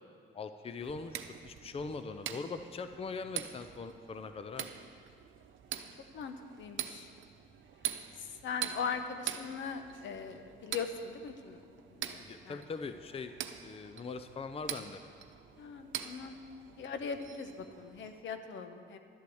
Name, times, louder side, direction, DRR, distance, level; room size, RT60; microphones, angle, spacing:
voice 1, 0.3-4.7 12.2-13.3 13.6-15.0, left 4 dB, 30° left, 9 dB, 0.6 m, -41 dB
sound 1, 0.8-18.2, right 10 dB, 75° right, 0.8 m, -44 dB
voice 2, 6.1-7.1 8.2-11.6 11.9-12.6 15.6-16.4 16.8-19.0, left 6 dB, 70° left, 8 dB, 1.1 m, -40 dB
11.5 x 8.7 x 7.8 m, 2.3 s
cardioid pair, 90°, 20 cm